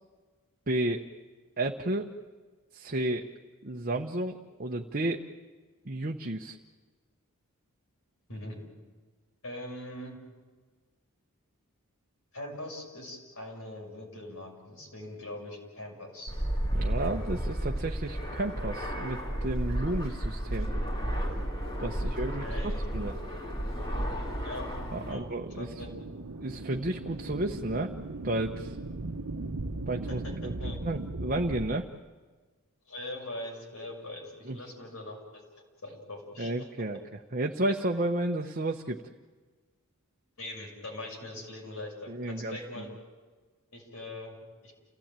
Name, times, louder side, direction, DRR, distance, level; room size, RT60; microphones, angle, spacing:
voice 1, 0.7-1.0 1.6-2.1 2.7-3.3 3.6-5.2 5.8-6.6 16.7-20.7 21.8-23.1 24.9-25.7 26.4-27.9 28.2-28.8 29.9-31.8 34.5-34.6 36.4-39.0 42.1-42.9, right 1 dB, 40° right, 2 dB, 1.0 m, -32 dB
voice 2, 8.3-8.6 9.4-10.2 12.3-16.3 22.0-22.1 22.4-22.8 24.4-24.7 25.1-25.3 25.6-26.0 30.1-30.8 32.9-35.4 35.8-36.5 40.4-42.9 43.7-44.4 44.6-44.7, left 1 dB, 70° left, 0 dB, 6.3 m, -41 dB
Fixed-wing aircraft airplane, 16.3-25.1, right 1 dB, 25° left, 2.7 m, -32 dB
sound 1, 24.5-31.7, right 2 dB, 85° right, 1.0 m, -38 dB
29.5 x 16.5 x 9.0 m, 1.4 s
head